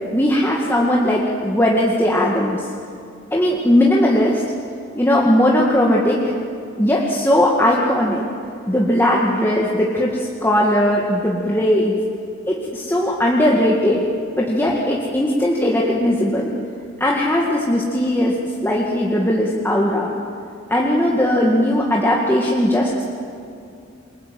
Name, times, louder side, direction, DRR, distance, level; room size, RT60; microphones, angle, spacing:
voice 1, 0.1-2.7 3.3-4.4 5.0-6.2 6.8-8.3 8.7-12.0 12.5-14.1 14.3-16.5 17.0-18.3 18.6-20.1 20.7-22.9, left 1 dB, 10° left, -3 dB, 2.1 m, -18 dB
28.0 x 24.0 x 7.8 m, 2.5 s
head